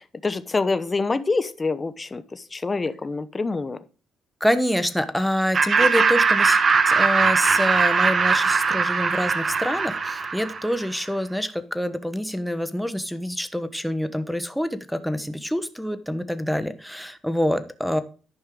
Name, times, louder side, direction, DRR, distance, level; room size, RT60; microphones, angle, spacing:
voice 1, 0.2-3.8, left 3 dB, 25° left, 13 dB, 0.9 m, -26 dB
voice 2, 4.4-6.6 6.9-18.0, equal, ahead, 10 dB, 1.1 m, -26 dB
Laughter, 5.5-10.8, right 5 dB, 40° right, 1.2 m, -20 dB
11.0 x 5.6 x 4.9 m, 0.36 s
cardioid pair, 90°, 0 cm